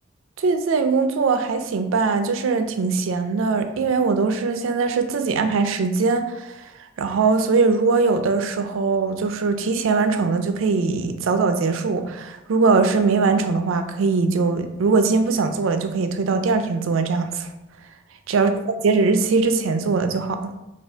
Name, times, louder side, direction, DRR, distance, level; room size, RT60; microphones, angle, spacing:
voice 1, 0.4-6.6 7.0-17.5 18.3-20.6, right 4 dB, 90° right, 8 dB, 0.4 m, -21 dB
3.5 x 2.3 x 4.3 m, 0.94 s
head